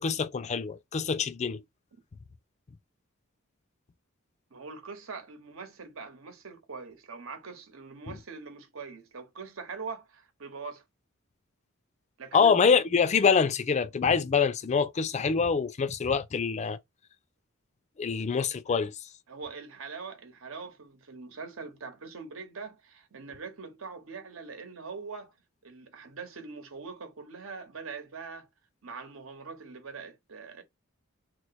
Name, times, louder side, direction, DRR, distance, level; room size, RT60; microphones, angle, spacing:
voice 1, 0.0-1.6 8.1-8.2 12.3-16.8 18.0-19.0, left 5 dB, 35° left, 0.4 m, -25 dB
voice 2, 4.5-10.8 12.2-12.6 19.3-25.3 25.6-28.5 28.8-30.6, right 4 dB, 75° right, 1.0 m, -42 dB
3.0 x 2.1 x 4.1 m
head